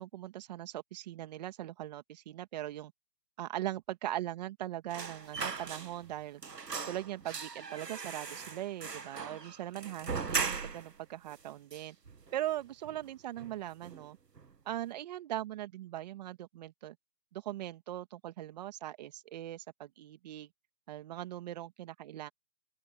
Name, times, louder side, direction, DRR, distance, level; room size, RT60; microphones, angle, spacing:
voice 1, 0.0-2.9 3.4-6.4 6.9-12.0 12.3-14.2 14.7-17.0 17.3-20.5 20.9-22.3, right 13 dB, 25° right, 2.2 m, -40 dB
sound 1, 4.9-6.2 6.4-11.0 11.3-11.4 11.7-12.5 12.8-13.1 13.4-14.1 14.4-14.5, right 5 dB, 80° right, 2.5 m, -39 dB
open air
hypercardioid pair, 155°, 48 cm